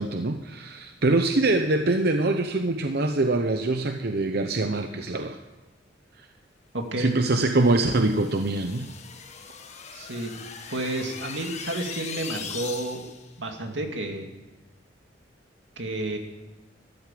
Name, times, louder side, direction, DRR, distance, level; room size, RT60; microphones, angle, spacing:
voice 1, 0.0-5.4 7.0-8.9, right 2 dB, 60° right, 6 dB, 0.8 m, -24 dB
voice 2, 6.7-7.1 9.9-10.3 10.7-13.0 13.4-14.3 15.8-16.2, right 2 dB, 85° right, 3 dB, 2.4 m, -31 dB
sound 1, 7.3-13.3, left 6 dB, 40° left, 1.4 m, -40 dB
14.0 x 13.5 x 7.6 m, 1.1 s
head